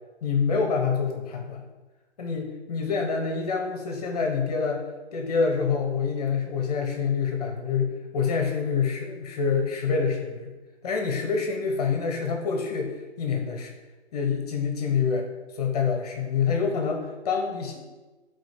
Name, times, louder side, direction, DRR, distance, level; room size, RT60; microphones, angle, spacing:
voice 1, 0.2-1.6 2.2-4.8 5.1-10.5 10.8-13.7 14.1-15.3 15.5-17.8, left 5 dB, 35° left, 2 dB, 1.2 m, -26 dB
11.5 x 4.0 x 5.1 m, 1.2 s
hypercardioid pair, 160°, 35 cm